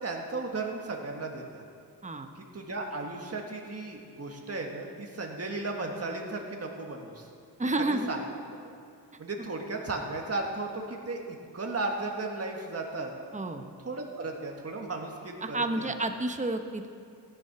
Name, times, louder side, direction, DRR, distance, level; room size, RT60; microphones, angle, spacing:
voice 1, 0.0-1.6 2.4-7.3 7.9-8.2 8.6-8.7 9.2-11.2 11.5-13.1 13.8-15.9, right 3 dB, 35° right, 1 dB, 1.4 m, -35 dB
voice 2, 7.6-8.1 9.4-9.5 13.3-13.6 15.4-16.9, right 2 dB, 20° right, 6 dB, 0.8 m, -30 dB
14.5 x 9.6 x 5.9 m, 2.4 s
wide cardioid pair, 75°, 41 cm